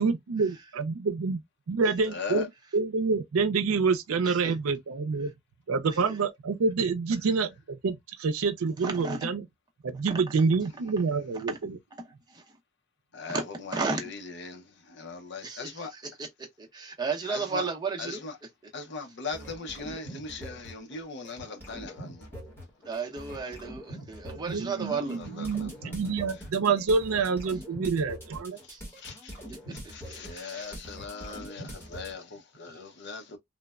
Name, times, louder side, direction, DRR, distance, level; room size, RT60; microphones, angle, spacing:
voice 1, 0.0-1.4 1.7-2.5 2.7-5.3 5.7-9.5 9.8-11.8 24.3-28.6, right 4 dB, 90° right, 0.5 m, -27 dB
voice 2, 2.1-2.4 13.1-14.6 14.9-15.9 17.3-17.7 18.0-18.3 18.7-22.3 24.9-25.7 29.0-29.3 29.9-33.4, left 4 dB, 55° left, 0.6 m, -39 dB
voice 3, 4.2-4.5 6.1-6.2 8.8-9.3 10.1-10.2 11.5-11.6 12.3-12.4 13.3-13.5 13.7-14.0 15.4-16.3 16.6-18.2 22.8-25.2 28.7-28.8 29.7-29.8 30.3-30.7, right 4 dB, 20° right, 0.6 m, -33 dB
sound 1, 19.3-21.0 21.2-32.1, equal, 10° left, 1.0 m, -43 dB
3.1 x 2.0 x 2.3 m
head